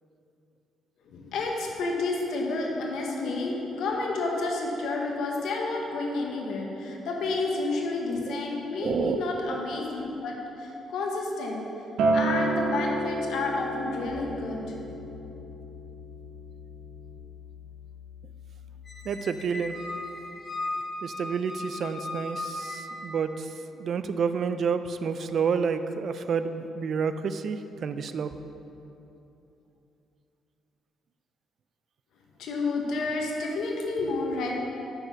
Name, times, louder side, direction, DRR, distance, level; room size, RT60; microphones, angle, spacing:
voice 1, 1.0-11.6 12.1-14.6 32.4-34.5, left 3 dB, 80° left, -1 dB, 1.1 m, -30 dB
voice 2, 8.8-9.2 19.0-19.8 21.0-23.5 23.8-28.4, right 6 dB, 60° right, 11 dB, 0.4 m, -29 dB
Acoustic guitar, 12.0-17.2, right 2 dB, 80° right, 0.7 m, -30 dB
sound 1, 14.1-19.4, left 7 dB, 35° right, 1.4 m, -47 dB
Squeak, 18.9-23.3, left 2 dB, 30° left, 1.2 m, -37 dB
6.0 x 5.4 x 5.7 m, 2.9 s
cardioid pair, 90°, 0 cm